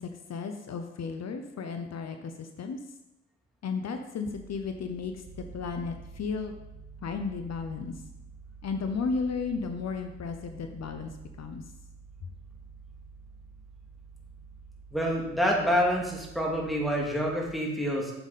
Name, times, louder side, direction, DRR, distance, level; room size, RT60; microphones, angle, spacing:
voice 1, 0.0-2.8 3.6-5.2 5.5-6.5 7.0-8.0 8.6-11.1 11.4-11.6, left 5 dB, 65° left, 6 dB, 0.8 m, -34 dB
sound 1, 4.2-17.4, right 5 dB, 60° right, 1.8 m, -49 dB
voice 2, 14.9-18.1, equal, ahead, -2 dB, 2.3 m, -27 dB
7.8 x 7.1 x 4.1 m, 0.96 s
cardioid pair, 85°, 29 cm